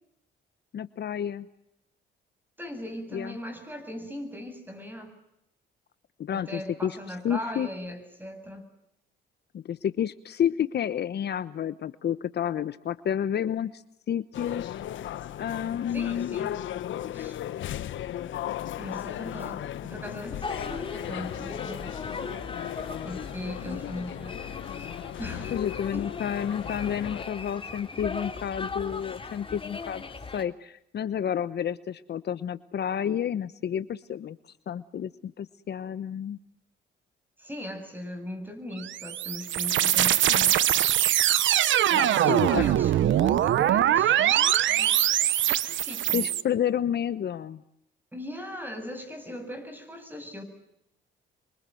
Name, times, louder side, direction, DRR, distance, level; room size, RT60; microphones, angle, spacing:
voice 1, 0.7-1.5 3.1-3.4 6.2-7.0 7.2-7.7 9.5-14.8 15.4-16.4 23.6-24.0 25.5-30.0 30.3-34.4 34.7-36.4 42.0-42.6 46.1-47.6, left 9 dB, 55° left, 14 dB, 1.1 m, -30 dB
voice 2, 2.6-5.1 6.3-8.7 15.9-16.6 17.1-17.4 18.8-21.9 23.0-24.4 24.7-24.9 25.2-26.1 37.4-40.6 41.8-44.5 44.8-46.3 48.1-50.4, left 1 dB, 10° right, 8 dB, 8.0 m, -39 dB
sound 1, 14.3-27.2, left 12 dB, 75° left, 1.5 m, -36 dB
sound 2, 20.4-30.4, left 4 dB, 25° left, 3.1 m, -39 dB
sound 3, 38.8-46.4, right 12 dB, 75° right, 1.2 m, -23 dB
28.0 x 24.0 x 7.9 m, 0.80 s
cardioid pair, 90°, 20 cm